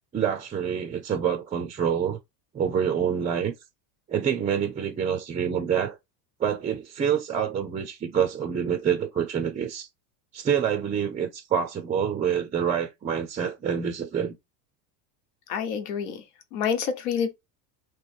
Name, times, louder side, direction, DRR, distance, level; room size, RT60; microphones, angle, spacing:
voice 1, 0.1-2.2 2.5-3.5 4.1-6.0 6.4-9.9 10.3-14.4, right 8 dB, 20° right, 0.4 m, -27 dB
voice 2, 15.5-16.2 16.5-17.3, left 7 dB, 85° left, 1.1 m, -28 dB
3.1 x 3.1 x 4.3 m
supercardioid pair, 125°, 47 cm